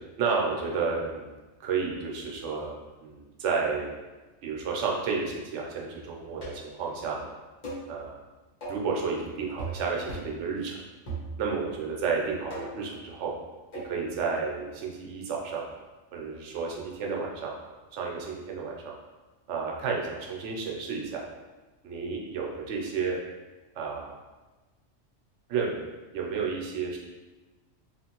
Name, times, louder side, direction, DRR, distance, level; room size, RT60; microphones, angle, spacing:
voice 1, 0.2-1.3 1.6-2.7 3.0-3.9 4.4-7.3 7.9-8.2 8.7-10.8 11.4-13.3 13.8-15.6 16.1-17.5 17.9-18.9 19.5-21.2 21.8-23.2 23.8-24.1 25.5-25.8 26.1-27.0, right 5 dB, 80° right, -1 dB, 0.9 m, -31 dB
sound 1, 6.4-6.8 7.6-7.9 8.6-8.9 9.6-9.8 10.1-10.4 11.1-11.6 12.5-12.9 13.7-14.0, right 2 dB, 40° left, 1.0 m, -38 dB
3.0 x 2.5 x 2.9 m, 1.2 s
omnidirectional pair, 1.2 m